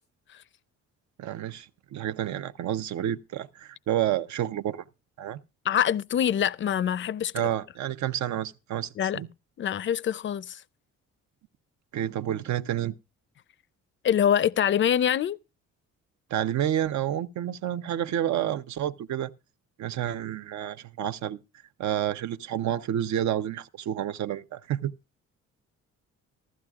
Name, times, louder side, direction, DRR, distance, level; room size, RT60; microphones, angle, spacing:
voice 1, 1.2-4.8 5.2-5.4 7.3-9.3 11.9-12.9 16.3-19.3 19.8-21.4 21.8-24.9, right 11 dB, 70° right, 0.7 m, -29 dB
voice 2, 5.6-7.3 9.0-9.2 9.6-10.6 14.0-15.4, left 9 dB, 40° left, 0.5 m, -24 dB
15.0 x 13.5 x 2.3 m
cardioid pair, 90°, 30 cm